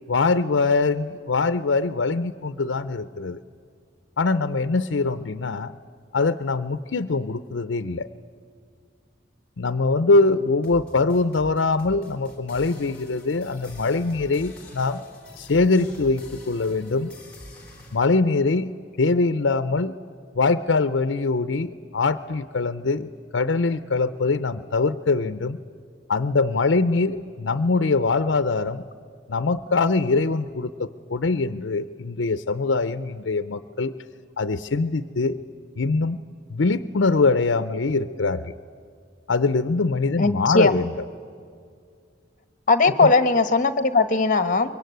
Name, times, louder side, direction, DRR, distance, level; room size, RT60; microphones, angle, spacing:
voice 1, 0.1-3.4 4.2-5.7 6.1-8.1 9.6-15.0 15.4-17.1 17.9-19.9 20.3-25.6 26.1-28.8 29.3-33.9 34.4-35.4 35.8-36.2 36.5-38.5 39.3-40.8 43.0-43.1, left 3 dB, 90° left, 13 dB, 0.6 m, -23 dB
sound 1, 10.5-18.0, left 1 dB, 5° left, 4.0 m, -44 dB
voice 2, 40.2-40.9 42.7-44.7, left 3 dB, 45° left, 12 dB, 1.2 m, -19 dB
24.0 x 23.0 x 9.3 m, 2.2 s
head